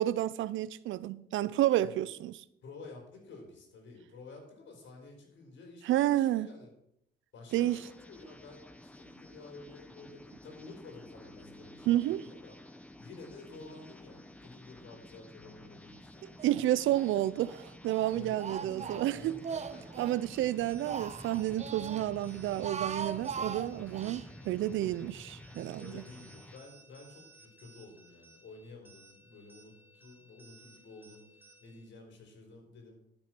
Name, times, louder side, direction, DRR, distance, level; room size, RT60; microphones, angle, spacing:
voice 1, 0.0-2.3 5.9-6.5 7.5-7.8 11.9-12.2 16.4-19.4 20.0-26.0, right 13 dB, 80° right, 0.5 m, -30 dB
voice 2, 2.6-6.7 7.3-12.5 13.0-16.5 18.1-20.1 20.5-20.7 24.4-24.6 25.8-32.9, left 3 dB, 70° left, 4.2 m, -51 dB
sound 1, 7.5-26.6, left 1 dB, 5° left, 1.0 m, -52 dB
Speech, 16.4-17.1 17.4-20.2 20.6-22.1 22.5-24.3, right 7 dB, 35° right, 0.6 m, -40 dB
sound 2, 20.3-31.9, right 2 dB, 10° right, 2.0 m, -60 dB
12.0 x 6.3 x 6.0 m
cardioid pair, 90°, 20 cm